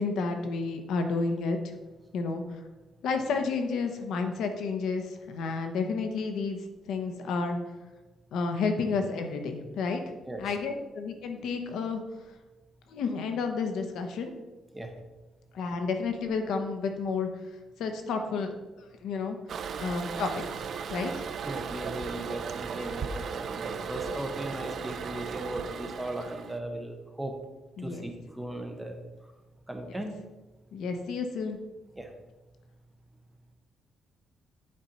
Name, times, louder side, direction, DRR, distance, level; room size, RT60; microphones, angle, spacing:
voice 1, 0.0-1.6 2.1-2.6 3.0-7.6 8.3-10.0 10.4-12.0 12.9-14.3 15.5-17.3 17.8-19.4 19.8-21.1 27.8-28.0 29.9-30.0 30.7-31.6, left 4 dB, 80° left, 6 dB, 1.0 m, -31 dB
Toilet flush, 19.5-26.6, right 6 dB, 45° right, 0.4 m, -36 dB
voice 2, 21.4-27.3 27.8-29.0 29.7-30.2 32.0-32.1, right 1 dB, 5° right, 4 dB, 0.8 m, -37 dB
8.8 x 4.3 x 5.3 m, 1.1 s
cardioid pair, 180°, 0 cm